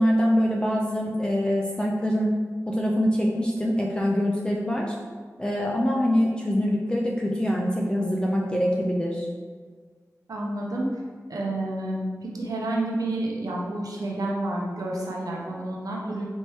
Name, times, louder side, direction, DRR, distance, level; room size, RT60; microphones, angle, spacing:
voice 1, 0.0-2.3 2.7-5.0 5.4-9.3, equal, 15° left, -2 dB, 0.5 m, -24 dB
voice 2, 10.3-11.0 11.3-16.3, right 1 dB, 85° right, -2 dB, 0.8 m, -29 dB
4.4 x 3.1 x 3.1 m, 1.5 s
wide cardioid pair, 50°, 6 cm